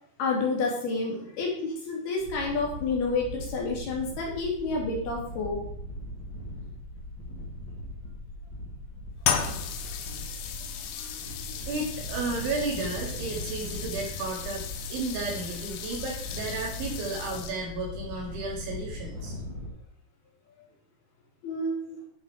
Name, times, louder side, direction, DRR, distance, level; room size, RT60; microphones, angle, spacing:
voice 1, 0.2-5.6 10.0-10.1 11.0-11.1 21.4-22.0, left 3 dB, 60° left, -2 dB, 4.6 m, -29 dB
sound 1, 2.2-19.7, left 1 dB, 35° left, 1.9 m, -40 dB
sound 2, 9.2-17.8, left 8 dB, 80° left, 3.5 m, -35 dB
voice 2, 11.6-19.4, right 3 dB, 80° right, -2 dB, 5.5 m, -33 dB
11.0 x 7.9 x 4.9 m, 0.66 s
omnidirectional pair, 5.3 m